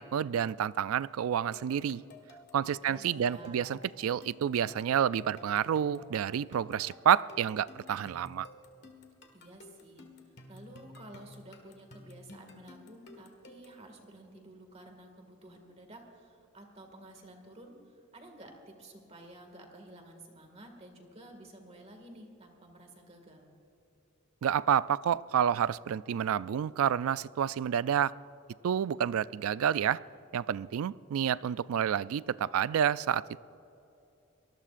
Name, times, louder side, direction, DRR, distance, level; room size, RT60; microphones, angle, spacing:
voice 1, 0.0-2.0 2.5-8.5 24.4-28.1 28.6-30.0 30.3-33.4, right 9 dB, 80° right, 19 dB, 0.3 m, -29 dB
sound 1, 1.5-13.8, left 3 dB, 50° left, 1.6 m, -53 dB
voice 2, 2.6-3.6 9.3-23.5, right 1 dB, 30° right, 3 dB, 2.0 m, -52 dB
24.0 x 19.5 x 2.5 m, 2.9 s
head